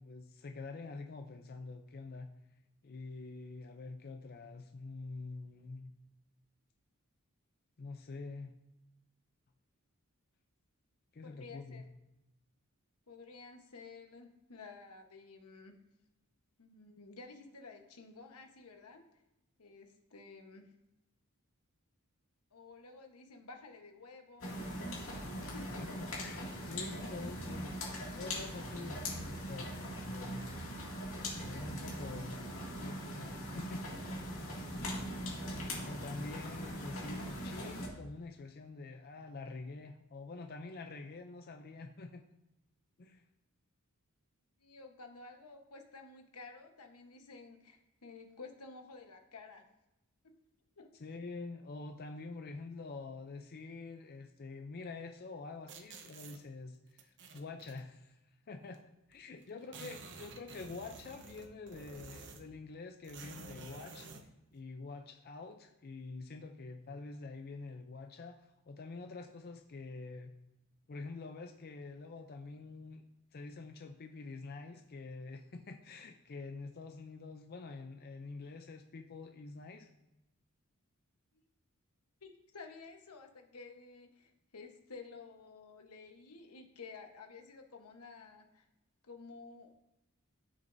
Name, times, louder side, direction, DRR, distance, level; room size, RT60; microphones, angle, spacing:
voice 1, 0.0-2.3 2.8-5.9 7.8-8.5 11.1-11.8 25.8-29.7 30.1-30.4 31.4-32.4 32.8-33.9 34.8-35.0 35.9-42.2 43.0-43.2 51.0-58.2 58.5-58.8 59.1-64.1 64.5-70.3 70.9-73.0 73.3-79.9, left 3 dB, 45° left, 5 dB, 0.5 m, -46 dB
voice 2, 11.2-11.8 13.1-15.8 16.6-19.0 19.6-20.7 22.5-24.6 25.4-26.1 44.6-49.6 50.8-50.9 82.2-88.7 89.0-89.7, left 4 dB, 90° left, 4 dB, 1.2 m, -52 dB
sound 1, 24.4-37.9, equal, 60° left, 2.3 m, -41 dB
sound 2, 55.7-56.4 57.0-57.8 58.7-58.8 59.1-59.2 59.4-62.6 63.0-64.3, right 4 dB, 55° right, 0.8 m, -51 dB
13.0 x 6.4 x 2.6 m, 0.93 s
head